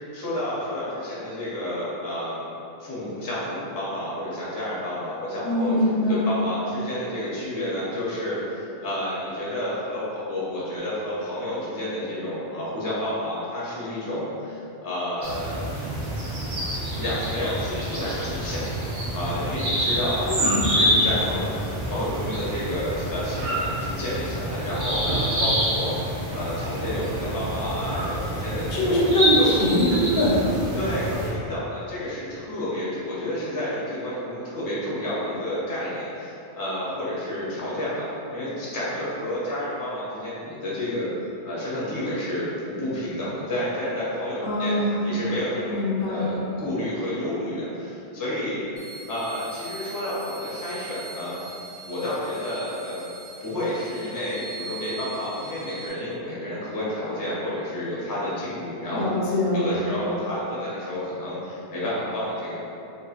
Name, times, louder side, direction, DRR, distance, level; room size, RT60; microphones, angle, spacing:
voice 1, 0.1-2.4 2.8-16.0 16.8-20.3 20.6-21.5 21.9-25.9 26.3-29.5 30.7-41.1 41.4-44.8 45.0-48.6 49.1-51.3 51.8-53.0 53.4-59.1 59.5-62.5, left 1 dB, 25° left, -8 dB, 0.5 m, -30 dB
voice 2, 5.4-6.3 20.3-20.6 28.7-30.5 44.4-45.0 45.7-46.4 58.9-59.8, left 1 dB, 75° left, -6 dB, 0.8 m, -23 dB
sound 1, 15.2-31.3, equal, 45° right, 0.4 m, -27 dB
sound 2, 48.8-55.9, right 4 dB, 60° right, 0.9 m, -41 dB
2.8 x 2.5 x 2.4 m, 2.7 s
omnidirectional pair, 1.0 m